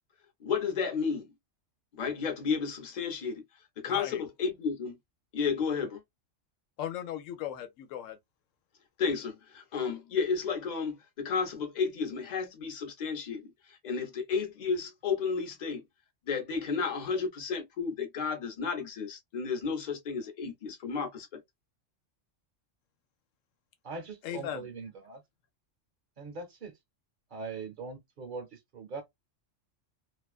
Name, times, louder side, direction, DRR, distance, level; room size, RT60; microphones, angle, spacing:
voice 1, 0.4-1.3 1.9-3.4 3.8-5.0 5.3-6.0 9.0-15.8 16.3-21.4, left 5 dB, 45° left, 0.7 m, -32 dB
voice 2, 3.9-4.2 6.8-8.2 24.2-24.7, left 10 dB, 85° left, 0.9 m, -37 dB
voice 3, 23.8-25.2 26.2-26.8 27.3-29.0, right 4 dB, 50° right, 0.7 m, -41 dB
2.4 x 2.3 x 2.3 m
omnidirectional pair, 1.3 m